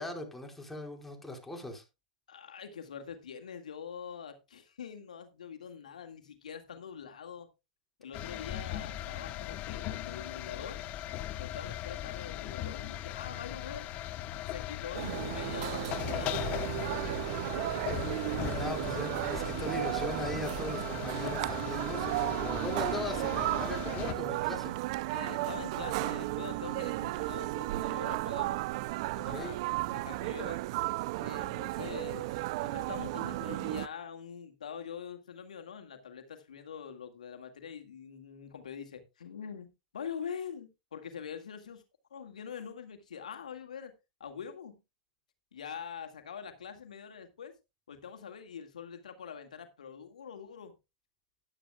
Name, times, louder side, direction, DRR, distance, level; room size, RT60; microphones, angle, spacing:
voice 1, 0.0-1.8 18.5-24.7 29.2-29.5, left 2 dB, 5° left, 4.5 m, -39 dB
voice 2, 2.3-7.5 8.0-10.9 11.4-13.9 14.5-17.2 17.6-18.0 25.1-28.6 29.2-30.6 31.2-39.7 39.9-41.8 42.1-43.9 44.2-44.8 45.5-47.6 47.9-50.7, left 7 dB, 85° left, 1.8 m, -44 dB
sound 1, 8.1-24.1, left 13 dB, 40° left, 1.0 m, -39 dB
sound 2, 14.9-33.9, right 19 dB, 55° right, 0.4 m, -34 dB
13.5 x 11.5 x 2.3 m
hypercardioid pair, 115°, 4 cm